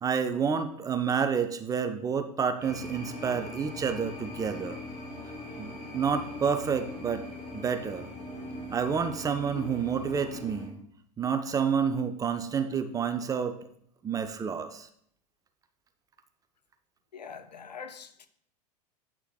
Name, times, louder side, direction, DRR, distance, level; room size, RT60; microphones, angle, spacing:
voice 1, 0.0-4.8 5.6-7.2 7.5-8.1 8.7-10.7 11.2-13.6 14.0-14.9, right 6 dB, 15° right, 0.5 m, -29 dB
sound 1, 2.6-10.7, left 1 dB, 35° left, 2.5 m, -41 dB
voice 2, 17.1-18.3, left 6 dB, 85° left, 0.5 m, -43 dB
8.1 x 5.6 x 2.3 m
figure-of-eight pair, 90°, 21 cm